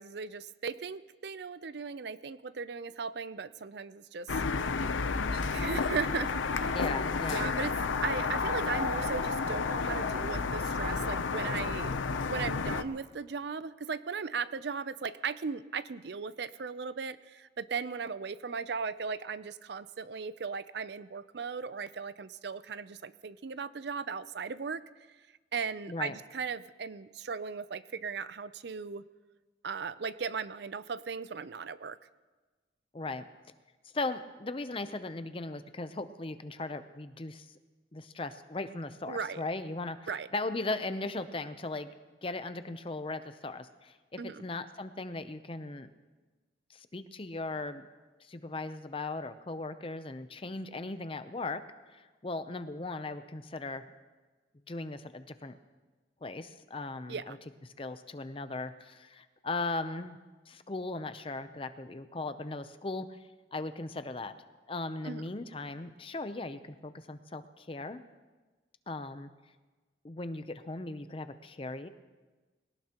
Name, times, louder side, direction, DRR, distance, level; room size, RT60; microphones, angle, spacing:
voice 1, 0.0-4.4 5.3-6.8 7.3-7.7 8.0-24.8 25.5-29.1 29.6-32.0 39.1-39.4 40.1-40.3 44.2-44.4 57.1-57.4 65.0-65.2, right 5 dB, 60° right, 15 dB, 0.5 m, -37 dB
sound 1, 4.3-12.8, left 4 dB, 90° left, 0.7 m, -31 dB
voice 2, 6.7-7.5 25.9-26.2 32.9-33.2 33.9-37.5 37.9-41.9 42.2-45.9 46.7-47.9 48.2-51.6 51.9-53.8 54.7-55.6 56.2-57.4 57.8-60.2 60.5-63.2 63.5-64.3 64.7-68.0 68.9-69.3 70.0-71.9, left 2 dB, 30° left, 11 dB, 0.6 m, -38 dB
21.0 x 18.0 x 3.0 m, 1.3 s
head